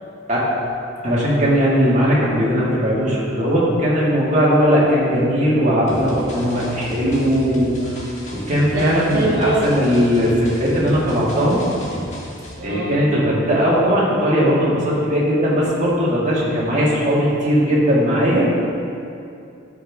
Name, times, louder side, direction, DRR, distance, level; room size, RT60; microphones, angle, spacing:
voice 1, 1.0-7.9 8.3-11.6 12.6-18.4, equal, 35° right, -7 dB, 2.1 m, -18 dB
sound 1, 5.9-12.5, equal, 35° left, 1.5 m, -34 dB
voice 2, 8.7-9.7 12.6-13.0, right 2 dB, 50° right, -7 dB, 1.1 m, -23 dB
12.5 x 5.6 x 3.6 m, 2.6 s
head